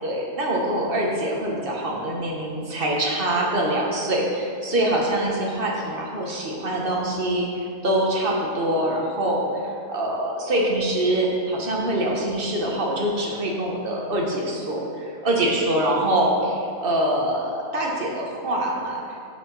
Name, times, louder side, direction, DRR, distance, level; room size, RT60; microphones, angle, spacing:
voice 1, 0.0-19.2, right 1 dB, 40° right, -2 dB, 1.4 m, -24 dB
6.9 x 6.4 x 6.0 m, 2.5 s
omnidirectional pair, 1.5 m